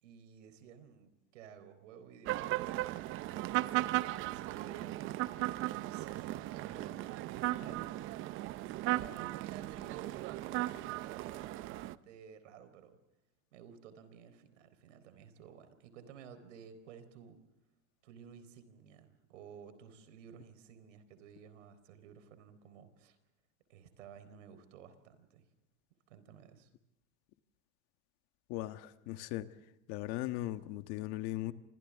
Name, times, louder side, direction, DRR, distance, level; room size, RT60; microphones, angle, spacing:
voice 1, 0.0-3.5 3.8-7.0 7.3-10.6 11.0-13.0 13.5-17.4 18.0-23.2 23.7-25.4 26.1-26.7, right 8 dB, 85° right, 11 dB, 4.2 m, -54 dB
sound 1, 2.3-12.0, right 16 dB, 35° right, 0.7 m, -36 dB
voice 2, 28.5-29.5 29.9-31.5, left 16 dB, 50° left, 10 dB, 1.4 m, -38 dB
29.5 x 26.0 x 3.6 m, 0.94 s
supercardioid pair, 145°, 36 cm